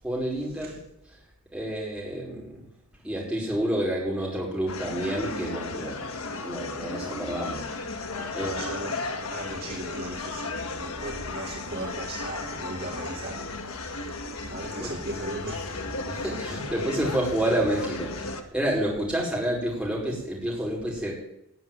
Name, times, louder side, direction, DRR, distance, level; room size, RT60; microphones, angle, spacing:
voice 1, 0.0-0.7 1.5-2.6 3.0-7.6 8.3-8.6 14.8-14.9 16.1-21.1, right 1 dB, 5° right, -4 dB, 5.6 m, -29 dB
sound 1, 4.7-18.4, left 3 dB, 75° left, 1.8 m, -35 dB
voice 2, 8.4-9.0 9.3-15.8, right 1 dB, 45° right, 0 dB, 2.1 m, -37 dB
20.0 x 7.2 x 9.4 m, 0.78 s
head